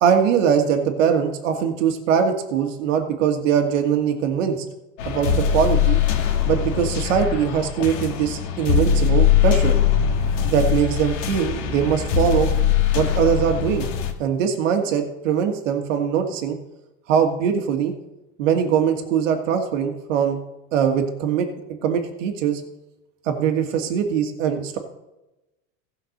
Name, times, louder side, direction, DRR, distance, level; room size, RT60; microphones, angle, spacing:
voice 1, 0.0-4.7 5.0-6.0 6.5-9.8 10.4-12.5 12.9-13.9 14.2-16.6 17.1-17.9 18.4-20.4 20.7-21.5 21.8-22.6 23.3-24.8, right 8 dB, 80° right, 5 dB, 1.9 m, -21 dB
sound 1, 5.0-14.1, left 8 dB, 80° left, 2.0 m, -21 dB
15.5 x 5.8 x 6.5 m, 0.97 s
supercardioid pair, 110°, 37 cm